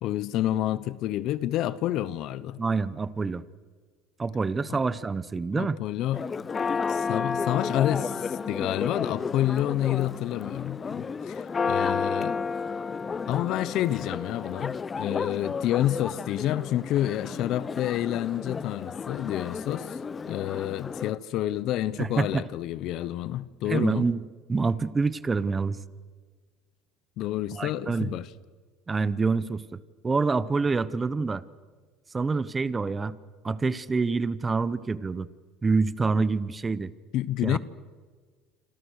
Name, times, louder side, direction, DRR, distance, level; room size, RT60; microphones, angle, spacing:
voice 1, 0.0-2.6 4.7-4.8 5.5-6.2 6.9-12.4 13.3-20.0 20.2-24.1 27.2-28.3 37.1-37.6, left 13 dB, 60° left, 0.9 m, -29 dB
voice 2, 2.6-3.4 4.2-5.8 22.0-22.4 23.6-24.2 24.5-25.8 27.5-28.2 28.9-31.4 32.1-33.1 33.4-35.3 35.6-36.9 37.4-37.6, right 4 dB, 20° right, 1.0 m, -26 dB
Church bell, 6.1-21.1, left 5 dB, 25° left, 0.7 m, -32 dB
27.0 x 27.0 x 6.6 m
supercardioid pair, 115°, 0 cm